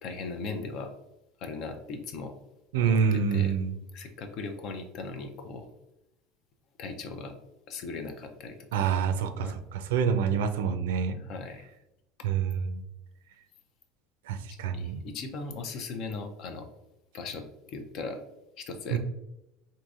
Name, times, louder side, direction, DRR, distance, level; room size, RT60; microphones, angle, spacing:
voice 1, 0.0-0.9 1.4-2.3 2.8-3.5 3.9-5.7 6.8-7.3 7.7-8.9 9.4-9.6 11.2-11.6 14.5-16.7 17.1-18.2 18.6-19.0, left 4 dB, 55° left, 6 dB, 0.5 m, -38 dB
voice 2, 2.7-3.8 8.7-11.2 12.2-12.8 14.3-15.0 18.9-19.0, right 7 dB, 75° right, 8 dB, 0.3 m, -27 dB
3.9 x 2.6 x 2.4 m, 0.91 s
hypercardioid pair, 80°, 0 cm